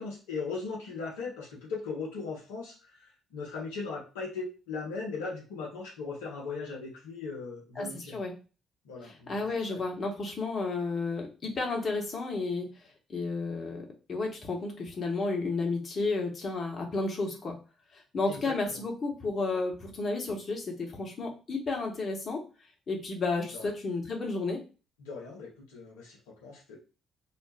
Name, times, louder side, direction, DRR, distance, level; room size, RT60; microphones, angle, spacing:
voice 1, 0.0-8.2 8.8-9.3 9.7-9.8 18.3-18.8 23.5-23.7 25.0-26.8, left 4 dB, 80° left, -3 dB, 0.7 m, -38 dB
voice 2, 7.8-8.3 9.0-12.7 13.1-17.6 17.9-22.4 22.9-24.6, left 3 dB, 45° left, 1 dB, 1.0 m, -32 dB
2.4 x 2.1 x 3.4 m, 0.33 s
hypercardioid pair, 50°, 0 cm